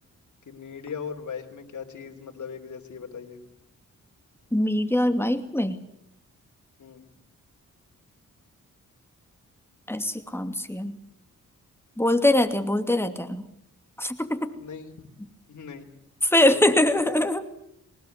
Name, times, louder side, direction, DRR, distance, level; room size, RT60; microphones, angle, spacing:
voice 1, 0.5-3.4 6.8-7.1 14.6-15.1 15.5-15.9 16.5-17.1, left 6 dB, 65° left, 3 dB, 3.4 m, -39 dB
voice 2, 4.5-5.8 9.9-11.0 12.0-13.4 14.0-14.5 16.2-17.5, left 1 dB, 5° left, 8 dB, 2.7 m, -23 dB
21.0 x 19.5 x 8.2 m, 0.76 s
cardioid pair, 60°, 32 cm